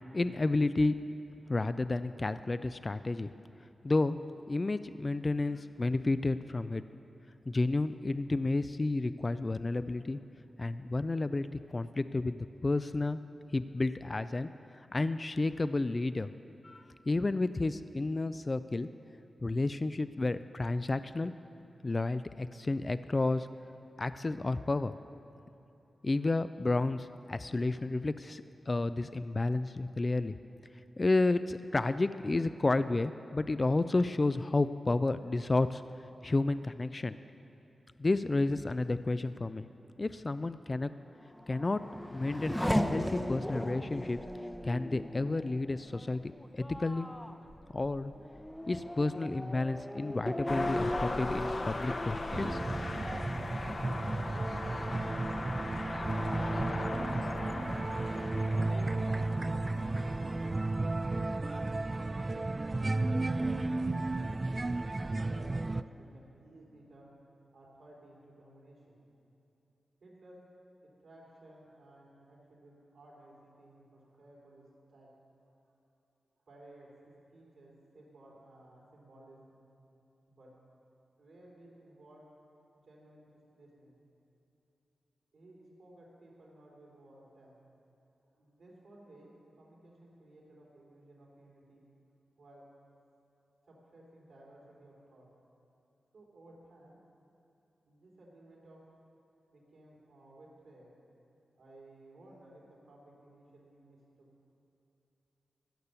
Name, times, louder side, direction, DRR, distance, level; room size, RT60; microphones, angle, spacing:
voice 1, 0.1-0.9 1.5-3.3 3.8-4.2 4.5-6.8 7.5-10.2 10.6-13.2 13.5-16.3 16.6-18.9 19.4-21.3 21.8-23.5 24.0-24.9 26.0-30.3 31.0-35.8 36.2-37.2 38.0-39.7 40.0-40.9 41.5-41.8 42.1-42.6 42.9-44.2 44.6-47.1 47.7-48.1 48.7-52.6, left 2 dB, 40° left, 12 dB, 0.3 m, -31 dB
Race car auto racing / Accelerating revving vroom, 41.2-54.4 54.8-55.5, equal, 10° left, 0.7 m, -38 dB
sound 1, 50.5-60.7, left 2 dB, 55° left, 0.9 m, -39 dB
sound 2, 52.3-65.8, right 2 dB, 35° right, 0.3 m, -33 dB
voice 2, 58.0-59.6 60.0-61.9 62.1-64.8 65.1-67.1 67.5-69.0 70.0-70.4 70.8-75.1 75.6-75.7 76.5-79.6 80.3-80.5 81.2-82.2 82.7-83.3 83.5-84.0 85.3-87.5 88.3-89.3 89.6-91.8 92.4-92.6 93.7-95.3 96.1-97.0 97.9-98.8 99.5-100.9 101.6-104.3, right 1 dB, 80° right, -4 dB, 3.4 m, -57 dB
15.0 x 6.7 x 6.9 m, 3.0 s
cardioid pair, 45°, 0 cm